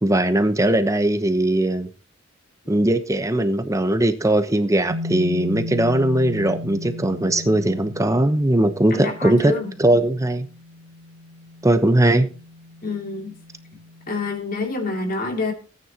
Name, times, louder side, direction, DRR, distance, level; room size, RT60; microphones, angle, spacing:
voice 1, 0.0-1.9 2.7-9.5 9.8-10.5 11.6-12.3, right 1 dB, 15° right, 10 dB, 0.9 m, -19 dB
sound 1, 4.9-14.4, left 2 dB, 85° right, 2.0 m, -36 dB
voice 2, 8.9-9.7 12.8-13.4 14.1-15.5, left 3 dB, 45° left, 2 dB, 2.9 m, -27 dB
18.0 x 9.6 x 2.9 m, 0.34 s
head